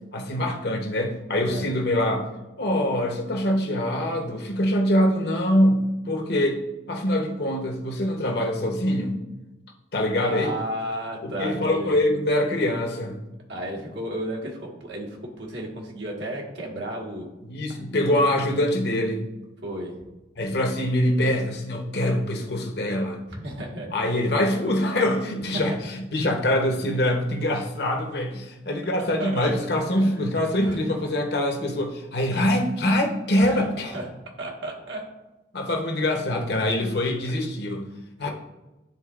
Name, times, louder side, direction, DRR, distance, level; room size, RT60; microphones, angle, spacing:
voice 1, 0.1-2.3 2.6-6.6 6.9-9.2 9.9-10.5 11.2-13.2 17.5-19.3 20.4-23.2 23.9-34.0 35.5-37.8 38.2-38.3, left 1 dB, 60° left, 2 dB, 0.9 m, -24 dB
voice 2, 10.2-12.0 13.5-17.3 19.6-19.9 23.3-23.9 25.5-25.8 29.2-29.6 29.9-30.2 30.6-30.8 33.4-33.6 33.9-34.1 34.4-35.0, right 1 dB, 65° right, -1 dB, 1.5 m, -33 dB
10.5 x 3.9 x 2.4 m, 1.0 s
head